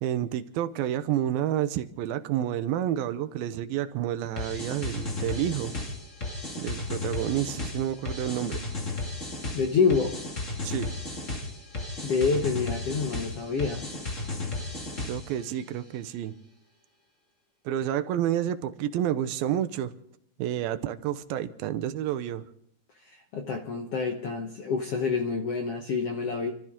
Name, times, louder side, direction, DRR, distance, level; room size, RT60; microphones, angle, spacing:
voice 1, 0.0-5.7 6.6-8.6 10.6-11.0 15.1-16.3 17.7-19.9 20.4-22.4, right 11 dB, 85° right, 2.7 m, -29 dB
Drum loop, 4.4-15.4, left 2 dB, 25° left, 2.0 m, -34 dB
voice 2, 9.5-10.2 12.0-13.8 23.0-26.5, left 5 dB, 65° left, 1.5 m, -27 dB
29.0 x 13.5 x 3.7 m
omnidirectional pair, 4.2 m